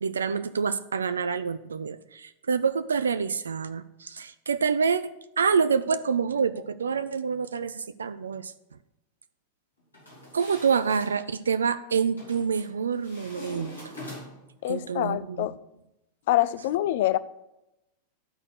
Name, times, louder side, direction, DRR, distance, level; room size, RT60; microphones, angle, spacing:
voice 1, 0.0-5.0 5.4-8.5 10.3-13.9 14.7-15.5, right 6 dB, 70° right, 0.3 m, -27 dB
sound 1, 9.9-11.1 12.2-12.7 13.0-14.5, left 1 dB, 80° left, 3.8 m, -43 dB
voice 2, 14.6-15.6 16.3-17.2, left 14 dB, 55° left, 0.4 m, -25 dB
12.0 x 4.3 x 6.4 m
figure-of-eight pair, 90°, 0 cm